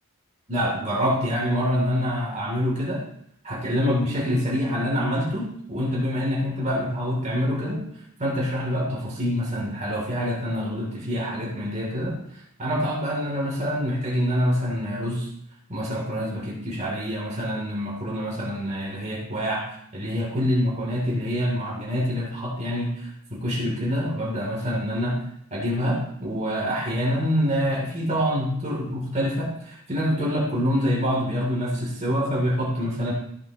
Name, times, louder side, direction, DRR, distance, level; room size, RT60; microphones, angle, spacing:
voice 1, 0.5-3.0 3.4-7.9 8.2-12.2 12.6-15.3 15.7-25.2 25.5-33.1, equal, 30° right, -3 dB, 2.8 m, -26 dB
14.0 x 7.9 x 2.9 m, 0.71 s
head